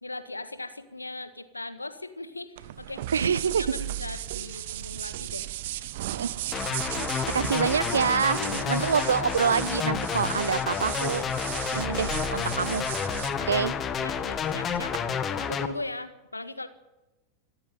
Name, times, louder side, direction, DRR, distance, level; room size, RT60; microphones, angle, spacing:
voice 1, 0.0-5.5 8.4-9.2 13.4-13.7 14.0-14.9 15.4-16.7, left 2 dB, 80° left, 11 dB, 1.8 m, -39 dB
sound 1, 2.6-15.0, right 14 dB, 55° right, 1.1 m, -36 dB
voice 2, 3.1-3.7 6.1-6.3 6.9-7.0 7.3-8.4 8.7-11.2 11.7-12.9 13.5-13.7, right 7 dB, 70° right, 19 dB, 0.9 m, -26 dB
sound 2, 6.5-15.7, left 7 dB, 25° left, 1.8 m, -30 dB
26.5 x 13.0 x 9.6 m, 1.0 s
figure-of-eight pair, 90°, 0 cm